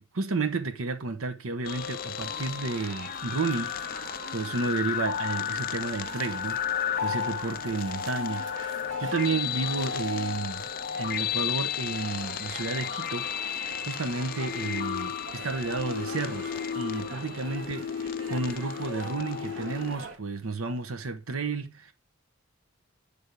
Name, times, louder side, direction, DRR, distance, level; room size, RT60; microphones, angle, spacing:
voice 1, 0.0-3.8 4.3-10.7 11.0-13.3 13.9-21.9, right 3 dB, 80° right, 0.9 m, -32 dB
sound 1, 1.6-19.9, left 9 dB, 45° left, 0.3 m, -33 dB
sound 2, 1.7-20.2, right 2 dB, 60° right, 1.1 m, -43 dB
8.1 x 3.5 x 5.1 m
head